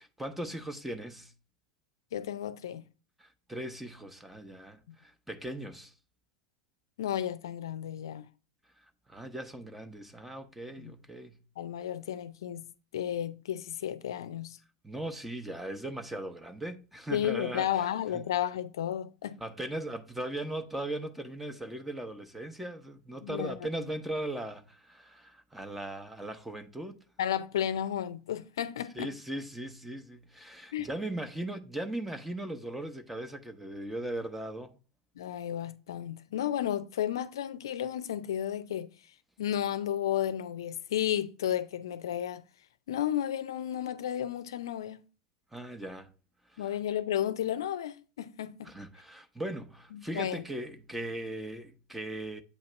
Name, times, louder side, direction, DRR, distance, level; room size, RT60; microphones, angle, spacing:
voice 1, 0.0-1.3 3.2-5.9 9.1-11.4 14.8-17.9 18.1-18.3 19.4-27.0 28.9-34.8 45.5-46.1 46.5-46.7 48.6-52.4, right 1 dB, 5° right, 0.8 m, -38 dB
voice 2, 2.1-2.8 4.9-5.0 7.0-8.3 10.8-10.9 11.6-12.7 12.9-14.6 17.1-19.4 23.2-23.6 27.2-29.1 30.7-30.9 35.2-38.9 39.4-42.4 42.9-45.0 46.6-48.7 49.9-50.4, left 10 dB, 70° left, 0.5 m, -33 dB
8.3 x 2.9 x 5.4 m
hypercardioid pair, 90°, 2 cm